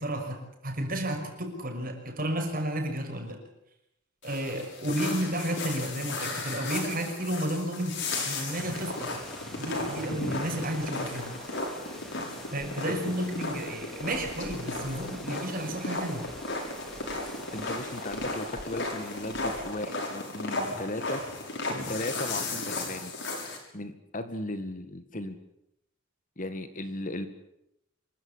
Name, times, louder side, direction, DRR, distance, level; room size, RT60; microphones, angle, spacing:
voice 1, 0.0-3.4 4.2-9.1 9.6-11.3 12.5-16.3, right 1 dB, 45° right, 3 dB, 6.1 m, -32 dB
sound 1, 4.2-23.6, left 2 dB, 65° left, 7.0 m, -35 dB
sound 2, 8.5-20.2, equal, ahead, 3.1 m, -46 dB
voice 2, 17.5-21.2 21.9-23.1 23.7-25.4 26.4-27.3, left 1 dB, 40° left, 9 dB, 2.0 m, -36 dB
26.5 x 15.5 x 9.9 m, 0.82 s
head